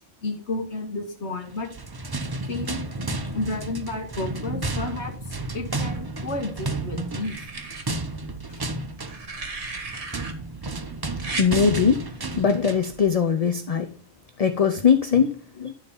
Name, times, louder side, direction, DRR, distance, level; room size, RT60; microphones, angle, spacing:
voice 1, 0.2-1.7 2.5-7.5 8.5-8.6 15.1-15.3, left 2 dB, 60° left, 1.8 m, -32 dB
sound 1, 1.6-13.0, right 2 dB, 25° right, 0.5 m, -32 dB
sound 2, 5.9-6.6 7.2-7.8 9.0-10.3 11.2-11.5 12.9-13.1, right 3 dB, 70° right, 1.8 m, -35 dB
voice 2, 11.4-12.0 12.4-13.9 14.4-15.7, left 6 dB, 40° left, 0.5 m, -21 dB
12.0 x 4.1 x 5.4 m
omnidirectional pair, 1.3 m